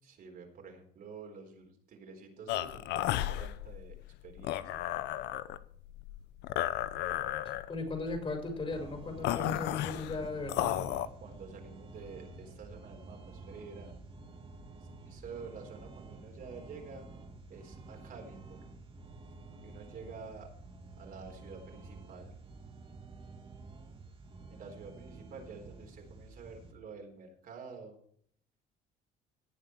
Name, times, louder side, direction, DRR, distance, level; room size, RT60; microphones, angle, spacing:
voice 1, 0.0-4.0 4.2-4.8 11.1-13.9 15.1-17.1 17.5-18.7 19.6-20.5 21.0-22.4 24.5-28.0, right 5 dB, 60° right, 2 dB, 3.9 m, -49 dB
sound 1, 2.5-11.1, left 13 dB, 85° left, 0.8 m, -34 dB
voice 2, 7.7-10.8, left 3 dB, 35° left, 4 dB, 5.2 m, -37 dB
sound 2, 8.7-26.7, right 3 dB, 30° right, 2.5 m, -50 dB
18.0 x 7.4 x 4.6 m, 0.63 s
cardioid pair, 110°, 17 cm